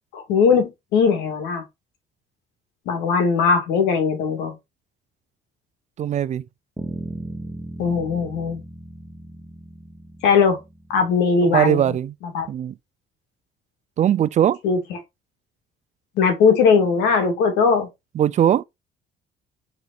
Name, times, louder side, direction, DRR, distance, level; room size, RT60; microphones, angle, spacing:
voice 1, 0.1-1.6 2.9-4.6 7.8-8.6 10.2-10.6 10.9-12.0 12.3-12.5 14.6-15.0 16.2-17.9, left 5 dB, 90° left, 2.5 m, -19 dB
voice 2, 6.0-6.4 11.4-12.1 12.5-12.7 14.0-14.6 18.2-18.6, right 10 dB, 45° right, 0.5 m, -20 dB
Bass guitar, 6.8-11.2, right 1 dB, 5° right, 1.4 m, -37 dB
5.6 x 4.5 x 4.1 m
cardioid pair, 110°, 17 cm